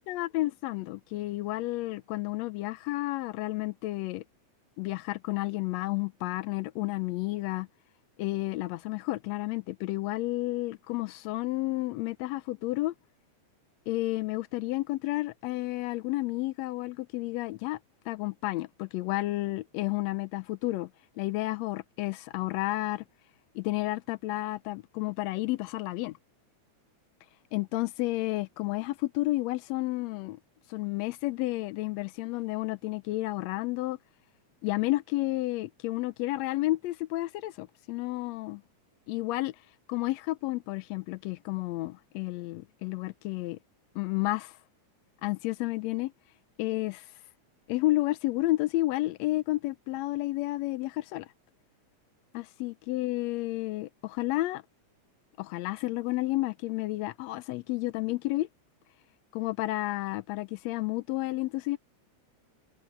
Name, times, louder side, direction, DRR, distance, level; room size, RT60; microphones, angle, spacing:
voice 1, 0.0-4.2 4.8-7.7 8.2-12.9 13.9-17.8 18.1-20.9 21.2-23.0 23.6-26.2 27.5-30.4 30.7-34.0 34.6-38.6 39.1-39.6 39.9-43.6 44.0-44.5 45.2-46.1 46.6-47.1 47.7-51.3 52.3-54.6 55.4-58.5 59.3-61.8, left 18 dB, 80° left, 1.7 m, -31 dB
omnidirectional pair, 3.4 m